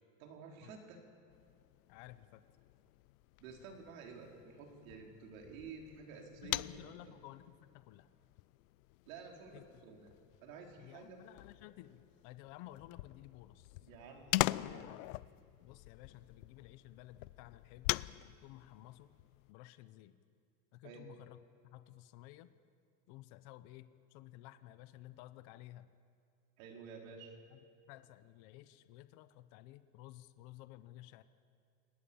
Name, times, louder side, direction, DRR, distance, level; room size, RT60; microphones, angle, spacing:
voice 1, 0.2-1.0 3.4-6.9 9.1-10.1 10.4-11.2 13.8-15.0 20.8-21.1 26.6-27.4, right 5 dB, 80° right, 2 dB, 4.5 m, -51 dB
sound 1, 1.3-19.5, left 20 dB, 75° left, 0.6 m, -43 dB
voice 2, 1.9-2.4 6.4-8.1 9.5-9.8 10.8-13.9 15.6-17.9 18.4-19.1 19.5-20.2 20.7-22.5 23.1-25.9 27.5-31.2, left 15 dB, 50° left, 13 dB, 0.9 m, -54 dB
29.5 x 19.0 x 7.1 m, 2.3 s
cardioid pair, 170°, 40 cm